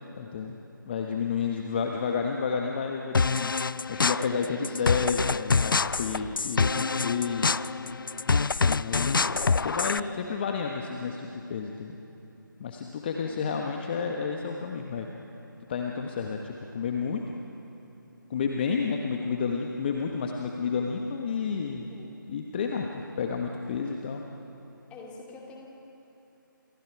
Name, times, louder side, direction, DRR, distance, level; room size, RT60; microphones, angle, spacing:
voice 1, 0.2-0.6 0.9-3.5 3.9-7.6 8.4-12.0 12.6-15.1 15.7-17.2 18.3-21.9 22.3-24.2, left 5 dB, 30° left, 2 dB, 1.3 m, -31 dB
sound 1, 3.1-10.0, left 4 dB, 70° left, 0.5 m, -26 dB
voice 2, 13.2-13.6 17.1-17.2 21.9-22.1 23.8-24.0 24.9-25.7, left 3 dB, 10° left, -1 dB, 2.5 m, -47 dB
30.0 x 27.5 x 4.8 m, 3.0 s
figure-of-eight pair, 155°, 11 cm